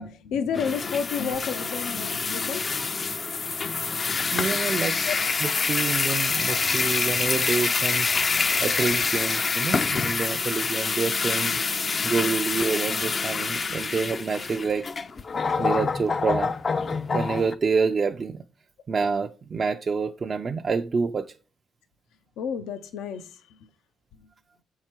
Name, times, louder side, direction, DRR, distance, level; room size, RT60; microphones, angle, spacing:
voice 1, 0.0-2.7 5.0-5.1 22.4-23.6, left 7 dB, 90° left, 0.5 m, -31 dB
sound 1, 0.5-17.6, left 4 dB, 35° left, 0.4 m, -26 dB
voice 2, 4.3-5.0 5.4-8.1 8.6-11.6 12.0-14.9 15.6-16.5 17.1-18.4 18.9-21.3, right 5 dB, 40° right, 0.4 m, -27 dB
7.2 x 4.7 x 4.4 m
cardioid pair, 90°, 0 cm